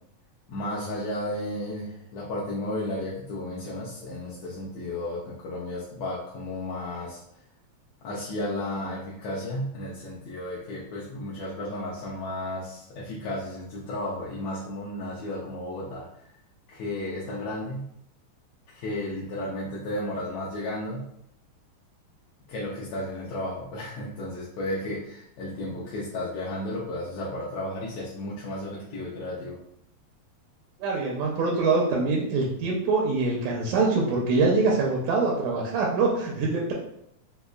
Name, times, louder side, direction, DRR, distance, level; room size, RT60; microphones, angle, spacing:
voice 1, 0.5-7.2 8.0-16.1 16.7-17.9 18.7-21.1 22.5-29.6, left 1 dB, 80° left, -6 dB, 1.7 m, -33 dB
voice 2, 30.8-36.7, right 3 dB, 80° right, -1 dB, 2.0 m, -24 dB
5.2 x 2.1 x 2.2 m, 0.76 s
omnidirectional pair, 3.4 m